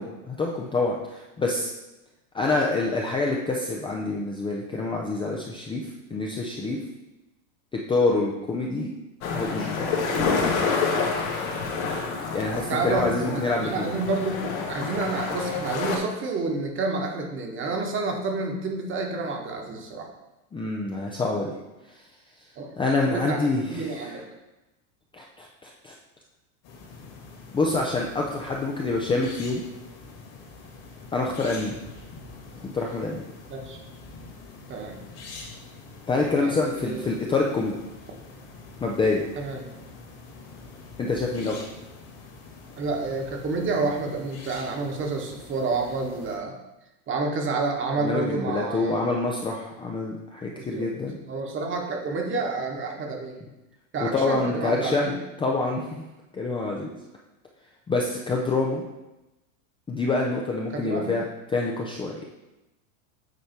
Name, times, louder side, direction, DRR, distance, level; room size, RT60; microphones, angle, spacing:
voice 1, 0.0-1.7 2.3-5.8 6.1-6.8 7.7-8.9 9.3-9.9 12.3-13.9 20.5-21.5 21.9-22.0 22.8-24.2 25.1-25.9 27.5-29.6 31.1-31.8 32.6-33.2 36.1-37.8 38.8-39.2 41.0-41.6 48.0-51.2 54.0-55.1 55.4-56.1 56.3-56.9 57.9-58.8 59.9-61.2 61.5-62.2, left 3 dB, 10° left, -1 dB, 0.5 m, -26 dB
sound 1, 9.2-16.0, left 4 dB, 75° left, 1.5 m, -28 dB
voice 2, 11.7-12.1 12.5-20.1 22.6-22.7 23.0-23.4 23.7-24.2 33.5-33.8 34.7-35.0 36.4-37.1 39.4-39.7 42.8-46.5 47.1-49.0 50.6-50.9 51.3-53.4 53.9-55.2 60.7-61.2, right 3 dB, 30° right, 2 dB, 1.2 m, -29 dB
sound 2, 26.6-46.4, left 3 dB, 50° left, 2.2 m, -45 dB
8.2 x 3.3 x 4.4 m, 0.99 s
supercardioid pair, 115°, 42 cm